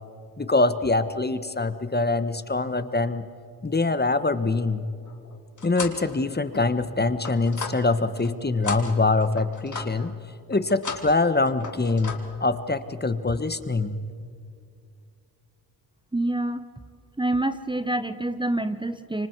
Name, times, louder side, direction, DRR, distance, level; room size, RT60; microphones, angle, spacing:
voice 1, 0.4-3.2 3.6-4.8 5.6-10.1 10.5-14.0, left 3 dB, 25° left, 12 dB, 1.4 m, -24 dB
sound 1, 5.1-6.1 6.5-8.3 8.6-10.1 10.5-11.2 11.5-12.2, left 4 dB, 50° left, 3.2 m, -36 dB
voice 2, 16.1-16.6 17.2-19.3, right 2 dB, 10° right, 11 dB, 1.0 m, -26 dB
28.0 x 24.5 x 4.7 m, 2.4 s
cardioid pair, 60°, 39 cm